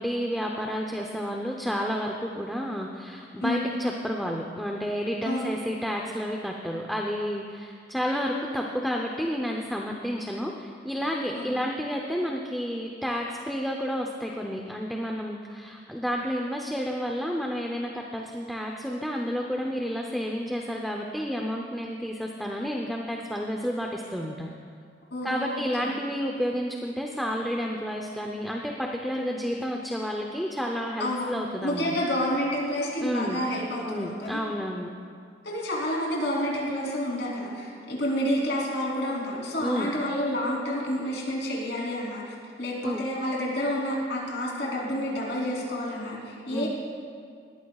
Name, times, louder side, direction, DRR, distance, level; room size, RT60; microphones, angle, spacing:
voice 1, 0.0-24.5 25.2-31.9 33.0-33.4 33.8-34.9 39.6-39.9 42.8-43.0 46.5-46.7, equal, ahead, 0 dB, 0.7 m, -30 dB
voice 2, 11.3-11.6 25.1-26.0 31.0-34.4 35.4-46.7, equal, 70° left, -4 dB, 3.4 m, -29 dB
20.5 x 15.0 x 2.4 m, 2.2 s
head